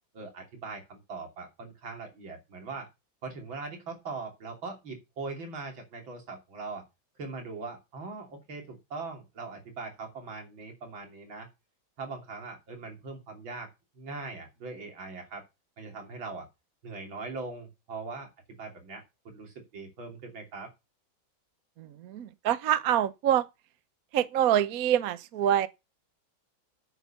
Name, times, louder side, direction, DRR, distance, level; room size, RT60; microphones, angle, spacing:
voice 1, 0.1-2.9 3.2-6.9 7.2-11.5 12.0-13.7 14.0-15.5 15.8-16.5 16.8-18.3 18.6-20.7, right 3 dB, 75° right, 3.7 m, -41 dB
voice 2, 21.8-23.5 24.1-25.7, right 10 dB, 60° right, 1.0 m, -26 dB
9.0 x 6.8 x 6.9 m
omnidirectional pair, 2.2 m